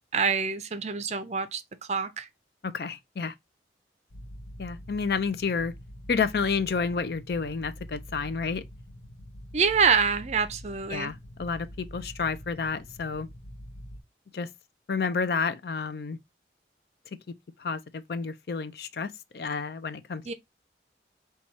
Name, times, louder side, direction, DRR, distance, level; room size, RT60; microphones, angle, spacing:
voice 1, 0.1-1.6 1.9-2.3 9.5-11.1 20.2-20.3, right 6 dB, 40° right, 0.5 m, -26 dB
voice 2, 2.6-3.3 4.6-5.7 6.1-8.6 10.9-13.3 14.3-14.5 14.9-16.2 17.6-20.3, left 5 dB, 60° left, 0.4 m, -30 dB
sound 1, 4.1-14.0, equal, 90° left, 0.7 m, -45 dB
4.6 x 2.3 x 4.0 m
head